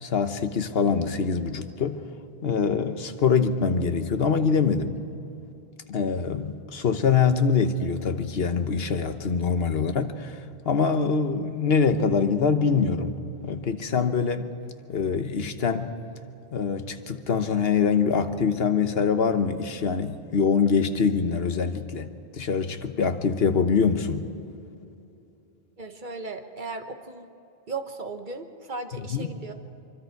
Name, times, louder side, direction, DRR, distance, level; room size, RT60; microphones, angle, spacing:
voice 1, 0.0-2.0 2.4-5.0 5.9-10.4 10.6-14.5 14.9-15.9 16.5-22.1 22.3-24.2 29.1-29.3, left 5 dB, 75° left, 8 dB, 1.3 m, -24 dB
voice 2, 25.8-27.3 27.7-29.5, right 3 dB, 50° right, 6 dB, 1.4 m, -36 dB
24.5 x 24.0 x 4.7 m, 2.7 s
omnidirectional pair, 1.0 m